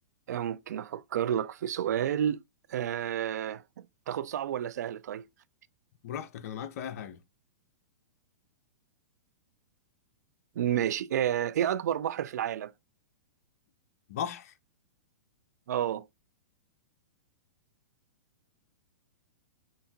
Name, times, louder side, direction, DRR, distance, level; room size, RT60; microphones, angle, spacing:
voice 1, 0.3-2.4 2.7-3.6 4.1-5.3 10.6-12.7 15.7-16.1, right 10 dB, 70° right, 0.4 m, -30 dB
voice 2, 6.0-7.2 14.1-14.5, left 9 dB, 60° left, 0.6 m, -37 dB
5.6 x 2.6 x 2.2 m
hypercardioid pair, 120°, 9 cm